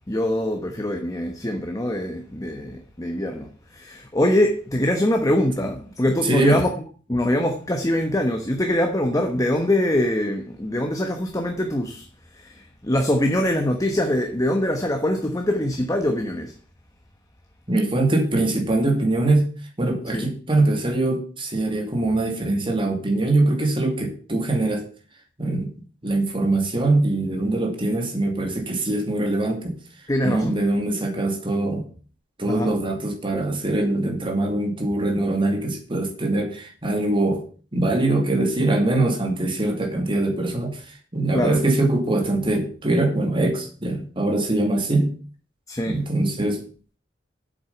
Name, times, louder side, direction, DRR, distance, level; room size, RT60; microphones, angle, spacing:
voice 1, 0.1-6.7 7.1-12.0 12.3-16.5 20.1-20.3 30.1-30.6 32.5-32.7 41.3-41.6 45.7-46.0, left 1 dB, 20° left, 1.2 m, -23 dB
voice 2, 6.2-6.6 17.7-19.5 19.8-24.8 25.4-25.7 26.0-29.8 30.2-31.8 32.4-37.4 37.7-40.8 41.1-45.1 45.9-46.6, right 2 dB, 30° right, 2.5 m, -22 dB
8.5 x 7.9 x 7.0 m
head